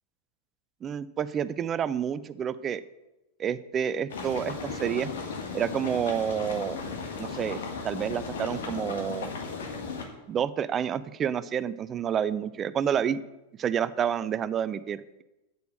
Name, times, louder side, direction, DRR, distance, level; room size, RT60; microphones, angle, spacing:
voice 1, 0.8-2.8 3.4-5.1 5.5-6.8 7.2-9.3 10.3-13.2 13.6-15.2, right 8 dB, 25° right, 16 dB, 0.4 m, -29 dB
sound 1, 4.1-10.0, left 4 dB, 60° left, 1.6 m, -36 dB
8.0 x 6.8 x 6.5 m, 1.0 s
figure-of-eight pair, 90°, 0 cm